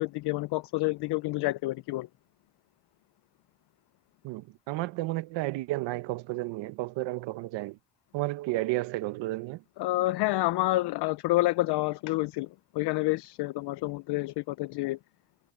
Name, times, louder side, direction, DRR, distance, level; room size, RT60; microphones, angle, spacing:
voice 1, 0.0-2.1 9.8-15.0, left 19 dB, 65° left, 0.6 m, -28 dB
voice 2, 4.2-7.8 8.1-9.6, right 18 dB, 85° right, 1.1 m, -32 dB
cardioid pair, 135°, 42 cm